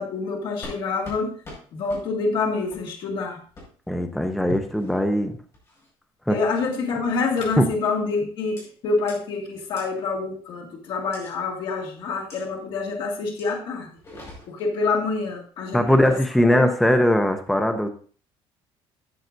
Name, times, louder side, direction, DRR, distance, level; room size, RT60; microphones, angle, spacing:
voice 1, 0.0-1.4 1.7-3.4 6.3-13.9 14.5-16.2 16.5-16.7, left 4 dB, 55° left, 0 dB, 2.0 m, -27 dB
sound 1, 0.6-0.8 1.0-1.2 1.4-1.6 1.9-2.0 2.7-2.8 3.6-3.7 4.6-5.0 5.5-5.9 6.4-6.7 7.5-7.7 8.6-8.7 9.1-9.2 9.8-9.9 11.1-11.3 12.3-12.4 13.4-13.5 13.9-14.7 15.8-16.3, left 1 dB, 30° left, 5.5 m, -42 dB
voice 2, 3.9-5.4 6.3-6.4 7.6-7.7 15.7-17.9, left 1 dB, ahead, 6 dB, 0.6 m, -20 dB
13.5 x 7.8 x 2.6 m, 0.42 s
cardioid pair, 170°, 10 cm